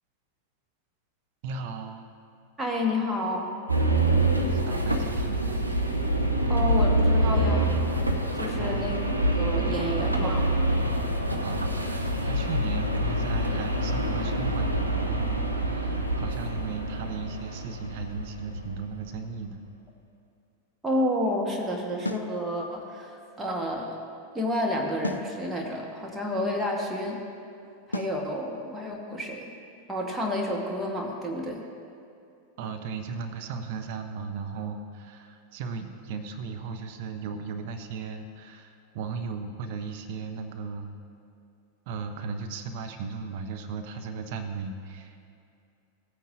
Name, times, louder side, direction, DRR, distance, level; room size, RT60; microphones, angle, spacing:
voice 1, 1.4-2.1 4.4-5.6 8.6-9.0 11.4-19.6 32.6-40.9 41.9-45.3, right 5 dB, 50° right, 6 dB, 0.7 m, -36 dB
voice 2, 2.6-3.5 6.5-7.7 8.4-9.0 9.3-10.5 20.8-24.0 24.3-27.2 27.9-29.5 29.9-31.6, left 1 dB, 10° right, -1 dB, 1.3 m, -30 dB
sound 1, 3.7-18.8, right 1 dB, 85° right, 0.8 m, -26 dB
sound 2, 22.0-22.3 25.0-25.3 27.9-28.2, left 1 dB, 80° left, 0.4 m, -32 dB
16.0 x 9.1 x 2.6 m, 2.6 s
figure-of-eight pair, 90°, 0 cm